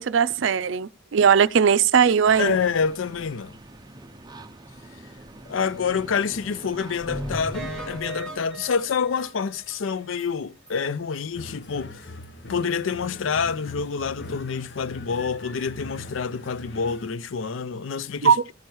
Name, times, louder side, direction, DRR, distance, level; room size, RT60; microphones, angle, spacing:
voice 1, 0.0-2.6 18.2-18.4, right 7 dB, 70° right, 0.4 m, -19 dB
sound 1, 2.2-8.0, right 2 dB, 20° right, 0.7 m, -44 dB
voice 2, 2.4-3.6 5.5-12.0 12.5-18.4, left 6 dB, 85° left, 0.5 m, -27 dB
sound 2, 7.1-9.8 10.2-10.3 10.7-10.8 11.1-11.2, right 1 dB, 5° left, 2.2 m, -36 dB
sound 3, 11.3-17.1, left 2 dB, 65° left, 1.0 m, -41 dB
13.5 x 4.7 x 4.5 m
head